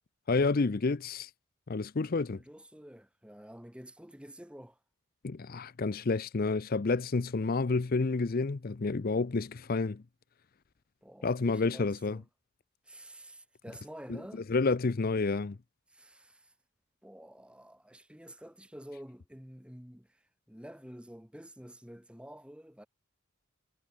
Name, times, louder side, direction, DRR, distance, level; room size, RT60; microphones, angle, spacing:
voice 1, 0.3-1.3 1.7-2.4 5.2-10.0 11.2-12.2 14.1-14.2 14.5-15.6, left 3 dB, 40° left, 0.5 m, -29 dB
voice 2, 2.3-4.8 11.0-12.2 12.8-14.4 15.9-16.5 17.0-22.9, equal, 5° right, 1.6 m, -49 dB
head